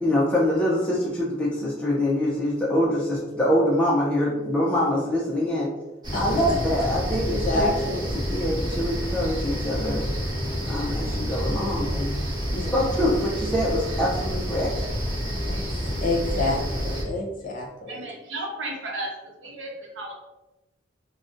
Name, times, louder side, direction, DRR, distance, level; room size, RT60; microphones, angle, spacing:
voice 1, 0.0-5.7 6.1-10.0 10.7-12.2 12.5-14.7, left 1 dB, 5° left, -6 dB, 0.4 m, -25 dB
sound 1, 6.0-17.0, equal, 20° right, 0.9 m, -28 dB
voice 2, 6.1-6.4 7.2-8.1 12.5-12.7 15.4-15.6 16.0-18.1, left 2 dB, 45° left, -1 dB, 0.7 m, -29 dB
voice 3, 16.2-16.5 17.9-19.1 19.4-20.1, right 2 dB, 75° right, -1 dB, 0.7 m, -34 dB
2.5 x 2.1 x 3.7 m, 1.1 s
head